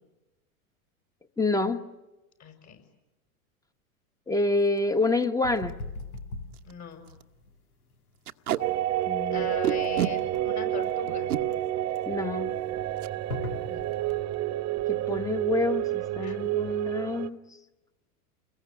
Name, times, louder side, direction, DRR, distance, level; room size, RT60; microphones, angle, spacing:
voice 1, 1.4-1.8 4.3-5.7 9.1-9.5 12.1-12.5 14.9-17.4, left 3 dB, 10° left, 10 dB, 1.4 m, -27 dB
voice 2, 2.4-2.8 6.6-7.1 9.3-11.3 13.4-13.8 16.2-16.5, left 7 dB, 40° left, 6 dB, 6.8 m, -40 dB
Packing tape duct tape, 4.6-4.8 5.2-5.3 5.6-5.7 6.2-6.3 6.5-6.7 7.1-7.2 8.2-8.6 9.6-10.1 11.1-11.4 13.0-13.1 13.5-13.7 13.9-14.3, right 11 dB, 90° right, 1.2 m, -30 dB
sound 1, 5.4-14.2, left 2 dB, 90° left, 3.0 m, -41 dB
sound 2, 8.6-17.3, right 14 dB, 35° right, 1.2 m, -29 dB
29.5 x 22.0 x 9.0 m, 1.1 s
hypercardioid pair, 110°, 43 cm